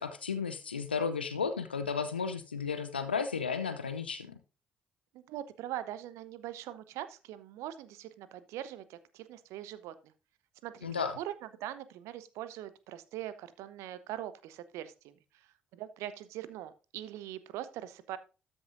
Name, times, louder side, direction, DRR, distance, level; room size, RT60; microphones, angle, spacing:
voice 1, 0.0-4.4 10.8-11.2, left 5 dB, 90° left, 10 dB, 0.6 m, -33 dB
voice 2, 5.1-10.1 10.6-11.3 11.6-18.2, right 12 dB, 65° right, 14 dB, 0.8 m, -42 dB
13.0 x 6.2 x 2.6 m, 0.31 s
figure-of-eight pair, 45°, 5 cm